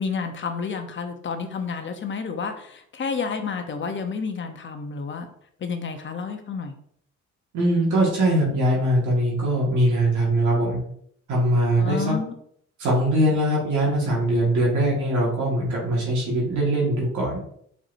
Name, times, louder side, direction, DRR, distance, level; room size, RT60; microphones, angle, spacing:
voice 1, 0.0-5.3 5.6-6.7 11.8-12.3, left 5 dB, 40° left, 6 dB, 0.8 m, -30 dB
voice 2, 7.5-10.8 11.3-12.2 12.8-17.4, right 1 dB, 75° right, -5 dB, 1.9 m, -21 dB
4.6 x 4.4 x 2.6 m, 0.68 s
cardioid pair, 90°, 30 cm